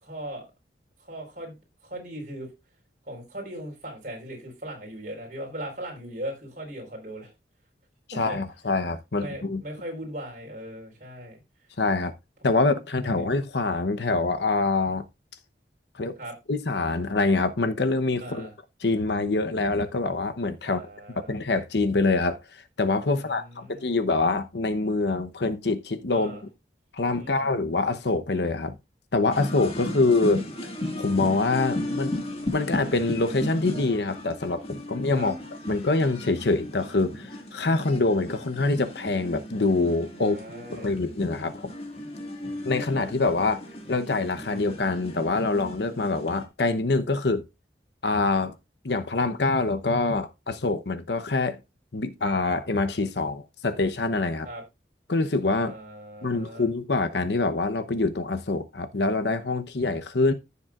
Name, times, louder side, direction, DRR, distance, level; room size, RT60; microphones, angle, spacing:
voice 1, 0.0-0.5 1.0-1.5 1.8-2.5 3.0-7.3 8.1-8.4 9.2-11.4 13.0-13.1 16.2-16.3 18.2-18.5 20.6-21.3 23.1-23.8 26.1-26.4 27.2-27.5 29.7-30.0 35.1-35.3 40.2-40.9 54.4-54.6 55.6-56.7, right 1 dB, 45° right, 4.5 m, -39 dB
voice 2, 8.2-9.6 11.8-12.1 12.4-15.1 15.9-16.2 16.5-18.5 18.8-20.8 21.2-26.4 26.9-28.8 29.1-30.4 31.0-32.2 32.5-35.3 35.7-40.4 40.7-41.7 42.6-47.4 48.0-48.5 48.8-51.6 51.9-54.5 55.1-55.8 56.2-60.3, left 3 dB, 70° left, 0.9 m, -25 dB
sound 1, 29.3-46.5, left 1 dB, 35° left, 1.8 m, -36 dB
14.5 x 7.0 x 2.5 m
head